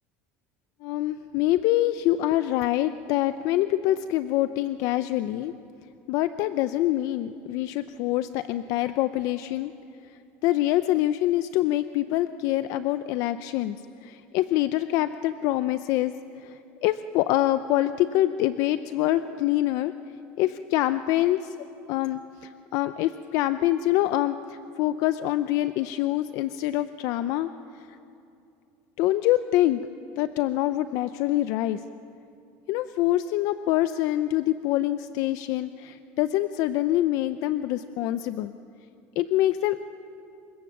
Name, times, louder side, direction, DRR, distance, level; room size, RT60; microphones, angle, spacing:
voice 1, 0.8-5.5 6.1-9.7 10.4-19.9 20.4-21.6 21.9-27.5 29.0-29.8 30.2-31.8 32.7-38.5 39.2-39.8, left 14 dB, 60° left, 12 dB, 0.6 m, -25 dB
28.0 x 23.5 x 7.3 m, 2.6 s
cardioid pair, 150°, 6 cm